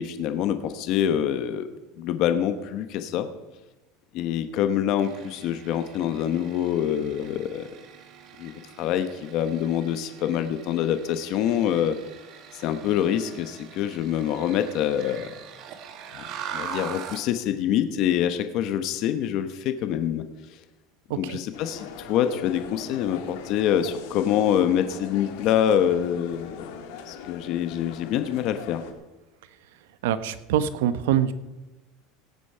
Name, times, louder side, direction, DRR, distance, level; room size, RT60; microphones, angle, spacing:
voice 1, 0.0-1.7 2.0-3.3 4.1-7.7 8.4-12.0 12.5-15.3 16.1-16.2 16.5-20.2 21.1-26.7 27.1-28.8, left 10 dB, 45° left, 10 dB, 0.9 m, -25 dB
sound 1, 5.0-17.3, right 8 dB, 40° right, 1.5 m, -42 dB
sound 2, 21.5-28.9, left 7 dB, 70° left, 1.7 m, -41 dB
voice 2, 30.0-31.3, right 10 dB, 85° right, 14 dB, 0.9 m, -24 dB
17.0 x 8.3 x 5.5 m, 1.1 s
cardioid pair, 165°, 0 cm